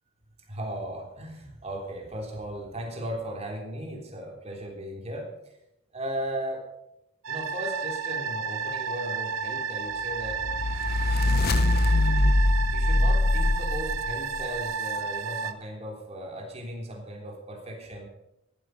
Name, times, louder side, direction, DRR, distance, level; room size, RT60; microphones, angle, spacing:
voice 1, 0.5-5.3 5.9-6.7 7.3-10.4 12.7-18.1, right 1 dB, 30° right, 1 dB, 3.4 m, -36 dB
sound 1, 7.2-15.5, right 5 dB, 75° right, 0.9 m, -32 dB
sound 2, 10.2-14.5, left 2 dB, 45° left, 0.8 m, -23 dB
14.5 x 12.5 x 5.3 m, 0.81 s
head